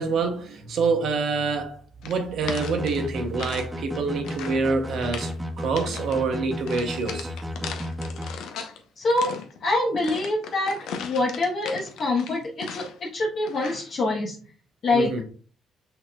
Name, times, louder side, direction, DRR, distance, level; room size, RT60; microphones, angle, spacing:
voice 1, 0.0-7.3 14.9-15.2, right 4 dB, 70° right, 0.9 m, -26 dB
sound 1, 2.0-3.7 4.0-4.6 5.0-5.4 5.7-6.2 6.7-8.8 9.1-13.1 13.5-13.9, left 6 dB, 85° left, 0.7 m, -38 dB
sound 2, 2.4-8.3, equal, 10° right, 1.0 m, -33 dB
voice 2, 9.0-9.3 9.6-12.9 13.1-14.4 14.8-15.1, left 2 dB, 50° left, 1.0 m, -25 dB
6.0 x 4.0 x 2.2 m
cardioid pair, 90°, 0 cm